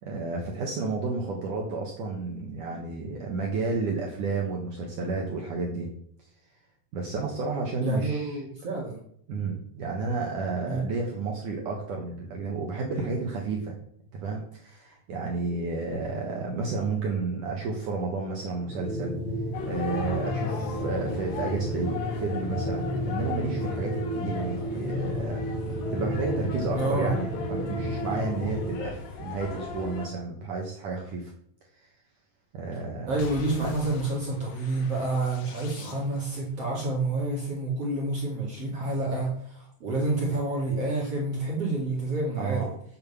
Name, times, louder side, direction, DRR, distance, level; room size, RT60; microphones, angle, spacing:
voice 1, 0.0-5.9 6.9-8.4 9.3-13.7 14.1-19.2 19.7-25.4 25.9-31.3 32.5-33.2 42.4-42.7, right 3 dB, 75° right, 0 dB, 1.9 m, -31 dB
voice 2, 7.8-9.0 10.7-10.8 26.7-27.1 33.1-42.7, right 2 dB, 45° right, -4 dB, 2.1 m, -28 dB
sound 1, 18.6-28.9, equal, 45° left, 2.0 m, -32 dB
sound 2, 19.5-30.1, left 5 dB, 70° left, 3.8 m, -38 dB
sound 3, 33.2-36.4, left 5 dB, 90° left, 4.2 m, -44 dB
7.7 x 7.2 x 7.1 m, 0.69 s
omnidirectional pair, 5.8 m